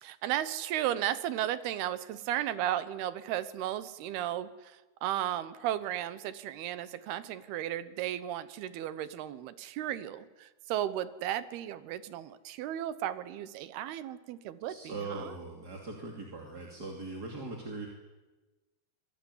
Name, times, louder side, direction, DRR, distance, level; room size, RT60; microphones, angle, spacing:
voice 1, 0.0-15.4, right 12 dB, 80° right, 14 dB, 2.9 m, -35 dB
voice 2, 14.6-17.9, right 3 dB, 30° right, 0 dB, 2.7 m, -40 dB
25.5 x 21.5 x 9.7 m, 1.2 s
omnidirectional pair, 4.6 m